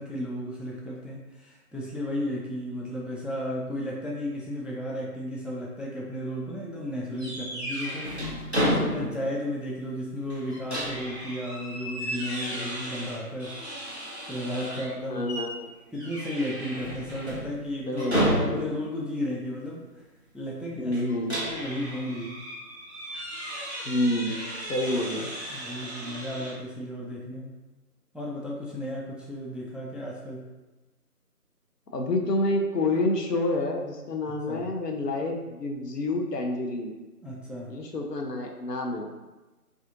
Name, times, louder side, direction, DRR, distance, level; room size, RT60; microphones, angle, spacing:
voice 1, 0.0-8.2 8.6-13.6 14.3-15.3 15.9-18.1 18.4-19.9 20.3-22.5 25.5-27.5 28.1-30.5 34.2-34.7 37.2-37.7, equal, ahead, -4 dB, 0.4 m, -34 dB
sound 1, 7.2-9.3 9.7-9.8 10.3-14.9 15.3-15.6 15.9-18.9 20.9-26.5, equal, 45° left, 0.7 m, -32 dB
voice 2, 8.7-9.1 12.6-12.7 15.1-15.7 17.9-18.6 20.8-21.4 23.8-24.4 24.7-25.3 31.9-36.9 37.7-39.1, left 1 dB, 85° left, 1 dB, 0.6 m, -28 dB
2.4 x 2.4 x 2.5 m, 1.1 s
figure-of-eight pair, 175°, 47 cm